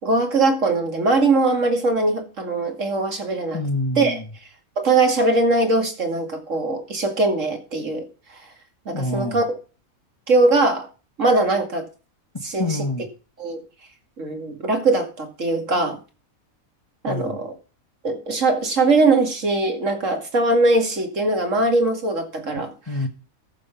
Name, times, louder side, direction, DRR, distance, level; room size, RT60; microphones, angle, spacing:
voice 1, 0.0-3.6 4.0-4.2 4.8-8.4 8.9-9.4 10.3-10.9 11.2-11.9 12.4-12.8 13.4-13.6 14.2-16.0 17.0-17.5 18.0-22.7, right 2 dB, 60° right, 4 dB, 2.7 m, -21 dB
voice 2, 3.5-4.3 8.9-9.4 12.6-13.1 17.1-17.4 22.9-23.1, left 2 dB, 20° left, 6 dB, 1.5 m, -26 dB
14.5 x 6.1 x 5.9 m, 0.34 s
omnidirectional pair, 1.4 m